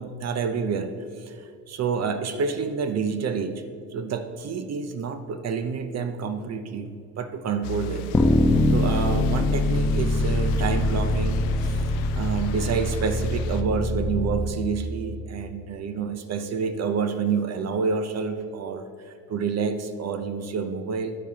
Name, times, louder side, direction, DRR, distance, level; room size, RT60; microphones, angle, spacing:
voice 1, 0.0-3.5 3.9-8.1 8.7-11.8 12.1-21.1, right 5 dB, 50° right, 8 dB, 0.7 m, -28 dB
sound 1, 7.6-13.6, left 3 dB, 90° left, 0.6 m, -34 dB
sound 2, 8.1-14.4, left 1 dB, 15° left, 0.9 m, -23 dB
10.5 x 8.3 x 2.8 m, 2.3 s
supercardioid pair, 75°, 34 cm